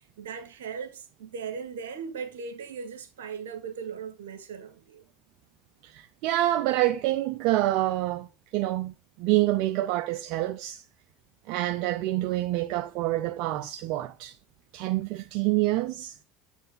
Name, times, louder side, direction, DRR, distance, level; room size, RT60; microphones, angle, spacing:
voice 1, 0.2-5.0, right 6 dB, 85° right, 1.4 m, -38 dB
voice 2, 5.8-8.3 8.5-10.8 11.5-14.4 14.7-16.2, right 16 dB, 65° right, 0.5 m, -27 dB
7.7 x 4.4 x 3.8 m
hypercardioid pair, 85°, 0 cm